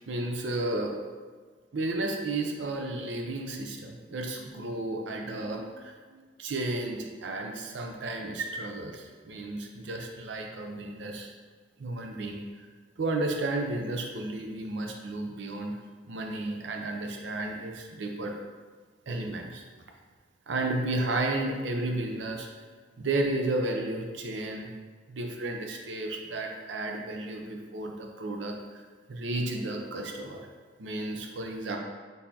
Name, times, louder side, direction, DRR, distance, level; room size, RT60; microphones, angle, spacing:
voice 1, 0.1-1.0 1.7-11.3 11.8-12.4 13.0-15.8 16.1-18.4 19.1-19.6 20.5-22.5 23.0-24.7 25.1-28.8 29.1-30.4 30.8-31.8, right 2 dB, 75° right, 2 dB, 0.6 m, -33 dB
4.2 x 3.4 x 2.8 m, 1.5 s
head